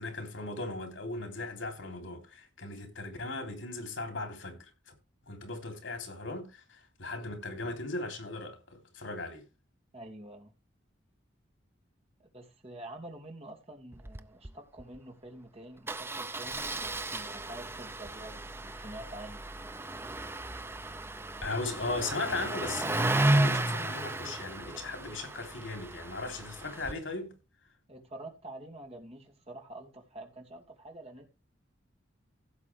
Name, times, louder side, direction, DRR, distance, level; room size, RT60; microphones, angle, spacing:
voice 1, 0.0-4.9 5.3-9.4 21.4-27.3, left 2 dB, 75° left, 3.5 m, -38 dB
voice 2, 9.9-10.5 12.3-19.4 27.9-31.3, right 1 dB, 30° right, 2.6 m, -47 dB
Engine starting, 13.9-14.2 14.4-14.5 14.8-15.0 15.9-26.9, right 2 dB, 10° right, 0.5 m, -33 dB
16.0 x 7.3 x 3.5 m
head